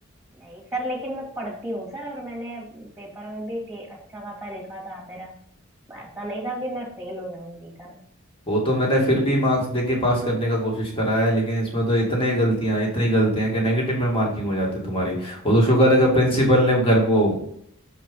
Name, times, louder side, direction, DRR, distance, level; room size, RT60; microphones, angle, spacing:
voice 1, 0.3-5.4 5.9-8.0, right 1 dB, 5° right, -6 dB, 2.1 m, -34 dB
voice 2, 8.5-17.4, equal, 25° left, -2 dB, 2.4 m, -21 dB
6.6 x 5.0 x 5.4 m, 0.69 s
head